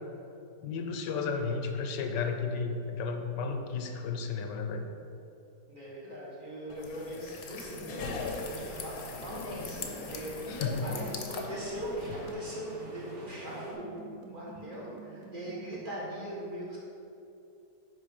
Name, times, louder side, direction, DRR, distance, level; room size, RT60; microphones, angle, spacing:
voice 1, 0.6-4.9 10.5-10.9, left 5 dB, 80° left, 5 dB, 1.3 m, -33 dB
voice 2, 5.7-10.6 10.8-11.0 11.3-16.8, right 1 dB, 30° right, -7 dB, 1.9 m, -40 dB
sound 1, 6.7-12.3, left 4 dB, 60° left, 1.2 m, -40 dB
sound 2, 7.7-16.2, right 4 dB, 75° right, 1.4 m, -50 dB
sound 3, 7.9-13.7, right 1 dB, 45° right, 1.5 m, -47 dB
10.5 x 3.9 x 5.3 m, 2.7 s
omnidirectional pair, 1.9 m